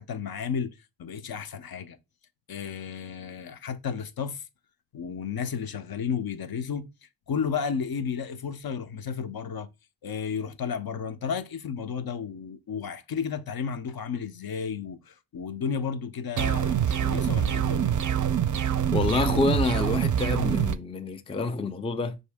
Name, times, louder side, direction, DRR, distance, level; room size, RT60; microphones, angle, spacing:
voice 1, 0.0-2.0 2.5-4.5 4.9-9.7 10.0-17.9, left 6 dB, 60° left, 0.6 m, -33 dB
sound 1, 16.4-20.8, right 9 dB, 50° right, 0.4 m, -25 dB
voice 2, 18.9-22.2, left 3 dB, 15° left, 0.4 m, -27 dB
5.4 x 2.7 x 3.4 m
wide cardioid pair, 80°, 42 cm